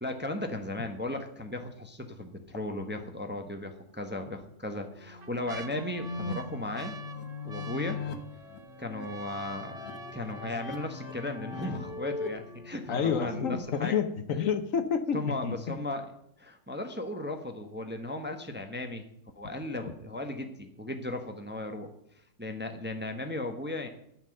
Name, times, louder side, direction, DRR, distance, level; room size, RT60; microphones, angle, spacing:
voice 1, 0.0-6.9 7.4-8.0 8.8-9.8 10.1-13.9 15.1-16.1 16.4-19.1 19.4-21.9 22.4-23.9, left 1 dB, 10° right, 5 dB, 0.8 m, -36 dB
sound 1, 2.5-2.6 3.0-3.1 4.0-4.5 4.9-12.9 13.6-13.7 13.9-14.4 14.9-15.0, right 3 dB, 50° right, 0.5 m, -48 dB
sound 2, 4.9-13.6, left 3 dB, 90° left, 1.6 m, -40 dB
voice 2, 12.9-15.6, left 7 dB, 65° left, 10 dB, 1.2 m, -29 dB
11.0 x 5.9 x 7.6 m, 0.73 s
omnidirectional pair, 1.5 m